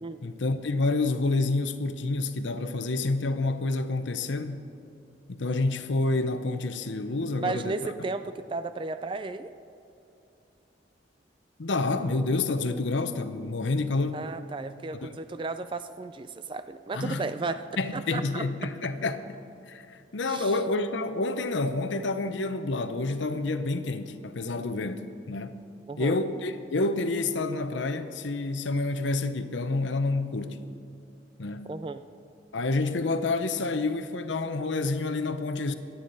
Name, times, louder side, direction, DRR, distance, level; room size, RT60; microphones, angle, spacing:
voice 1, 0.2-4.6 5.3-7.7 11.6-14.2 15.0-15.1 16.9-17.2 17.8-19.2 19.7-25.6 26.0-30.7 31.4-31.7 32.5-35.7, left 3 dB, 75° left, 0.8 m, -28 dB
voice 2, 7.4-9.5 14.1-17.7 17.9-18.4 20.3-20.6 25.9-26.1 31.7-32.0, right 3 dB, 25° right, 0.3 m, -34 dB
24.5 x 9.4 x 4.1 m
head